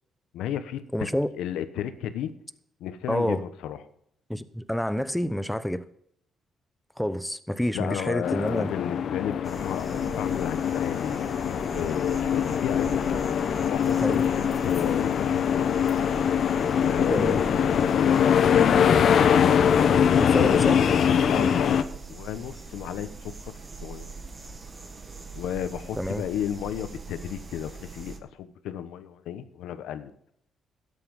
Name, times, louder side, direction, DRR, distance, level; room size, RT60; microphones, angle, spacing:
voice 1, 0.3-0.8 1.3-2.3 2.8-3.8 7.7-13.0 13.6-15.8 16.7-19.3 20.2-20.8 21.3-23.3 23.8-24.1 25.3-30.1, left 10 dB, 85° left, 1.0 m, -33 dB
voice 2, 0.9-1.3 3.1-3.4 4.3-5.8 7.0-8.7 14.0-14.2 17.1-17.4 20.2-20.8 21.3-21.5 26.0-26.2, equal, 5° left, 0.9 m, -28 dB
sound 1, 8.2-21.8, left 8 dB, 60° left, 0.9 m, -23 dB
sound 2, 9.4-28.2, right 4 dB, 30° right, 1.6 m, -42 dB
12.5 x 8.5 x 5.4 m
cardioid pair, 90°, 0 cm